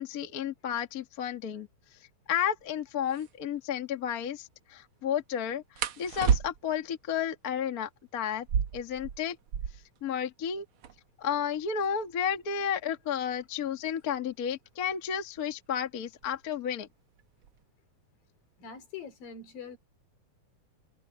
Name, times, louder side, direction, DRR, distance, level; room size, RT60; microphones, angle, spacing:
voice 1, 0.0-1.7 2.3-8.5 8.7-9.4 10.0-10.6 11.2-16.9, left 8 dB, 40° left, 1.4 m, -32 dB
sound 1, 2.6-2.7 3.1-3.3 5.8-6.9 8.3-10.0 10.3-10.4 10.6-11.2 11.8-14.4 15.4-15.7 16.1-16.5 16.9-17.6, right 7 dB, 90° right, 1.1 m, -32 dB
voice 2, 18.6-19.8, left 6 dB, 80° left, 5.4 m, -43 dB
omnidirectional pair, 4.0 m